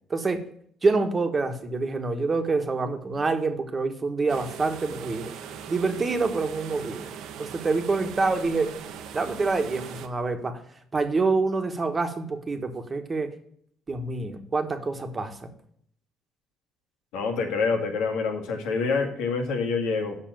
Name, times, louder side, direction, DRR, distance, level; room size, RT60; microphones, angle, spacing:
voice 1, 0.1-0.4 0.8-5.3 5.7-7.1 7.4-8.7 9.1-10.6 10.9-13.3 13.9-15.5, right 3 dB, 25° right, 6 dB, 1.4 m, -26 dB
sound 1, 4.3-10.1, right 8 dB, 75° right, 1.0 m, -40 dB
voice 2, 17.1-20.2, left 4 dB, 85° left, 3 dB, 2.1 m, -26 dB
7.5 x 6.0 x 7.6 m, 0.65 s
cardioid pair, 100°, 0 cm